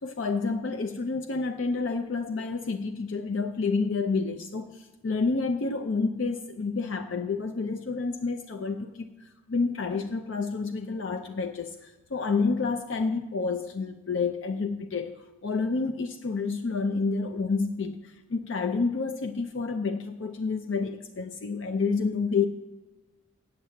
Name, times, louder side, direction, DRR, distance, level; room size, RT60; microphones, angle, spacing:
voice 1, 0.0-22.5, left 4 dB, 60° left, 7 dB, 0.5 m, -29 dB
8.1 x 8.0 x 7.6 m, 1.2 s
head